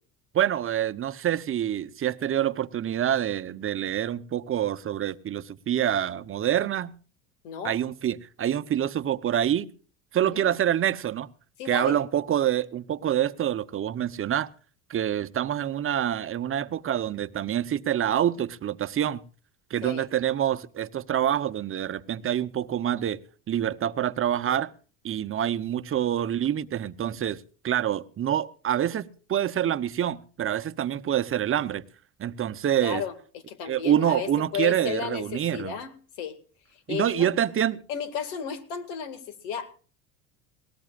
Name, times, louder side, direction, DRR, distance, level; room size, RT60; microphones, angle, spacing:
voice 1, 0.3-6.9 7.6-9.7 10.1-11.3 11.7-14.5 14.9-19.2 19.7-23.2 23.5-24.7 25.0-31.8 32.2-33.0 33.7-35.8 36.9-37.8, right 10 dB, 35° right, 0.8 m, -26 dB
voice 2, 7.4-7.8 10.3-10.5 11.6-12.0 19.8-20.1 32.8-36.4 36.7-37.3 37.9-39.7, left 7 dB, 80° left, 2.2 m, -34 dB
19.5 x 19.0 x 2.5 m
supercardioid pair, 95°, 38 cm